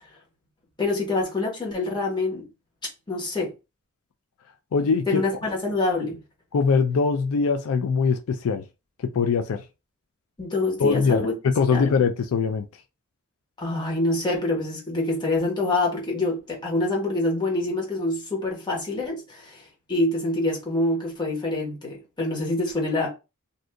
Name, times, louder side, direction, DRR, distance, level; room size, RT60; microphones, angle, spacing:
voice 1, 0.8-2.5 3.1-3.5 5.1-6.2 10.4-11.3 11.7-12.0 13.6-23.1, left 2 dB, 20° left, 1.3 m, -26 dB
voice 2, 4.7-5.2 6.5-8.6 9.1-9.6 10.8-12.6, left 5 dB, 75° left, 0.4 m, -22 dB
2.6 x 2.5 x 3.4 m
head